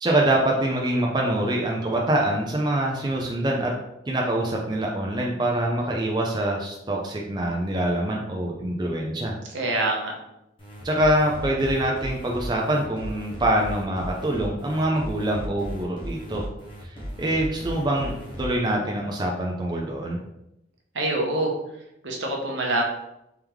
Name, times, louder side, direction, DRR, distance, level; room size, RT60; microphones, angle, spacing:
voice 1, 0.0-3.7 4.1-9.4 10.8-16.5 17.2-20.2, right 1 dB, 20° right, -1 dB, 0.4 m, -25 dB
voice 2, 9.5-10.1 20.9-21.6 22.0-22.8, right 2 dB, 75° right, 0 dB, 0.9 m, -25 dB
sound 1, 10.6-18.5, equal, 25° left, 1.0 m, -36 dB
3.5 x 3.5 x 3.0 m, 0.85 s
head